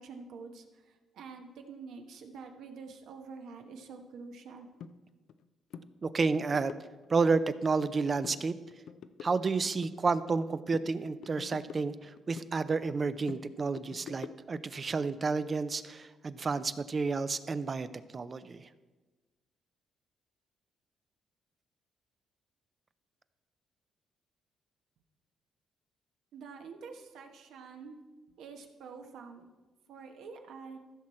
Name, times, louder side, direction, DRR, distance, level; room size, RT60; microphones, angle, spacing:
voice 1, 0.0-4.7 26.3-28.0 28.4-29.5 29.9-30.8, right 5 dB, 80° right, 4 dB, 1.2 m, -47 dB
sound 1, 4.8-4.9 5.3-5.4 5.7-5.9 6.2-7.5 7.8-8.4 8.7-10.5 10.7-12.5 12.8-14.7, left 7 dB, 75° left, 0.5 m, -47 dB
voice 2, 6.0-6.7 7.1-8.5 9.2-17.9 18.1-18.7, right 4 dB, 35° right, 13 dB, 0.5 m, -30 dB
14.5 x 6.3 x 4.3 m, 1.2 s
cardioid pair, 90°, 0 cm